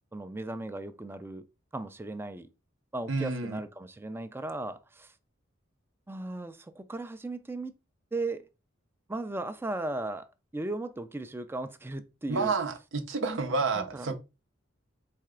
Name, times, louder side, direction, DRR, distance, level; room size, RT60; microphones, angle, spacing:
voice 1, 0.1-1.4 1.7-2.5 2.9-5.1 6.1-7.7 8.1-8.5 9.1-10.3 10.5-12.5 13.7-14.2, right 2 dB, 10° right, 0.4 m, -36 dB
voice 2, 3.1-3.6 12.3-14.2, right 4 dB, 65° right, 0.6 m, -30 dB
4.2 x 3.2 x 3.6 m
head